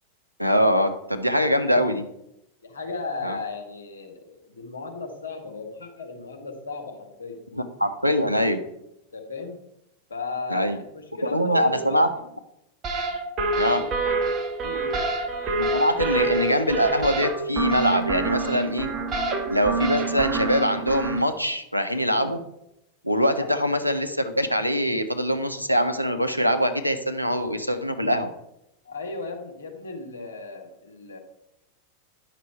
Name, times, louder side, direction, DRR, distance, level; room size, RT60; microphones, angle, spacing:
voice 1, 0.4-2.0 3.2-3.4 7.5-8.6 10.5-10.8 11.2-12.1 13.6-13.8 15.6-18.9 19.5-22.4 23.0-28.3, equal, 90° right, 8 dB, 0.8 m, -23 dB
voice 2, 2.6-7.4 9.1-9.5 10.1-12.2 13.7-14.0 14.6-15.0 23.4-23.7 28.8-31.2, left 3 dB, 70° left, 2 dB, 1.7 m, -36 dB
sound 1, 12.8-21.2, right 3 dB, 30° right, 1.6 m, -27 dB
10.5 x 6.0 x 4.5 m, 0.83 s
figure-of-eight pair, 90°, 0 cm